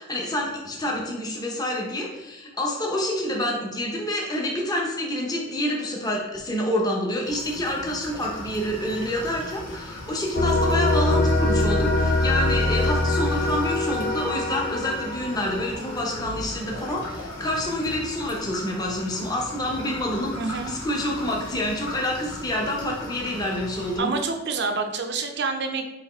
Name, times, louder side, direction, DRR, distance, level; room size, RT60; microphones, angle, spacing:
voice 1, 0.0-24.1, left 1 dB, 20° left, -1 dB, 0.7 m, -27 dB
sound 1, 7.2-24.0, left 1 dB, 70° left, 1.4 m, -38 dB
sound 2, 10.4-16.4, left 2 dB, 45° left, 0.4 m, -24 dB
voice 2, 20.3-20.7 24.0-25.9, right 4 dB, 55° right, 5 dB, 0.5 m, -27 dB
4.0 x 3.1 x 4.3 m, 1.0 s
head